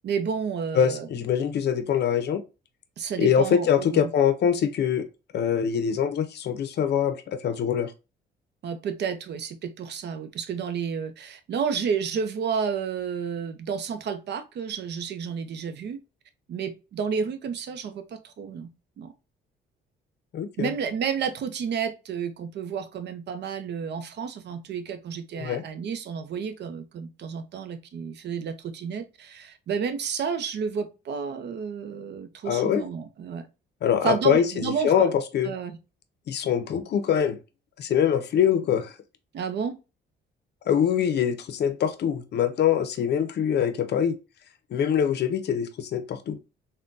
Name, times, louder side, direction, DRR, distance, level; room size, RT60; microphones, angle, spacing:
voice 1, 0.0-1.1 3.0-4.1 8.6-16.0 16.5-18.7 19.0-19.1 20.6-33.5 34.0-35.1 35.4-35.8 39.3-39.8, right 6 dB, 60° right, 0.6 m, -31 dB
voice 2, 0.7-2.4 3.2-5.1 5.3-7.9 20.3-20.7 25.4-25.6 32.4-32.8 33.8-35.5 36.3-37.4 37.8-38.9 40.7-44.2 44.7-46.4, left 8 dB, 55° left, 0.6 m, -24 dB
3.6 x 2.2 x 2.5 m
cardioid pair, 90°, 20 cm